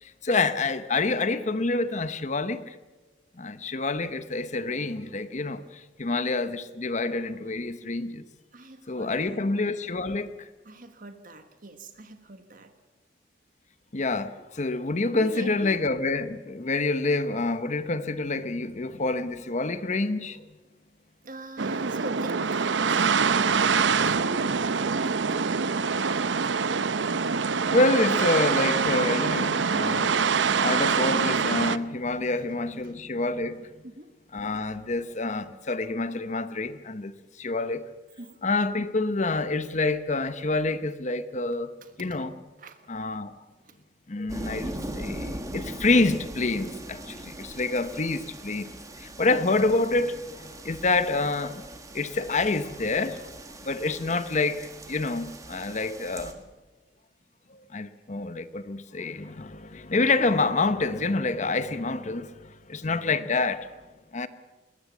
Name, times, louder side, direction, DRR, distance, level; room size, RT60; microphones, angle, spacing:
voice 1, 0.0-2.8 3.4-8.2 8.9-10.5 13.9-20.4 27.7-30.1 30.6-33.7 34.3-37.1 37.4-37.8 38.4-41.7 42.0-42.3 42.9-43.3 44.1-48.7 49.0-51.6 51.9-56.4 57.5-63.7 64.1-64.3, left 3 dB, 40° left, 0.9 m, -27 dB
voice 2, 8.5-9.4 10.6-12.8 15.1-15.8 21.2-25.8 26.4-26.6 32.4-32.5 32.8-33.0 33.8-34.2 38.2-38.5 41.8-42.2 42.6-43.0 43.6-43.8, right 1 dB, 50° right, 1.5 m, -43 dB
sound 1, 21.6-31.8, right 5 dB, 85° right, 0.7 m, -25 dB
sound 2, 44.3-56.3, right 1 dB, 20° right, 1.9 m, -40 dB
22.0 x 20.0 x 7.3 m
head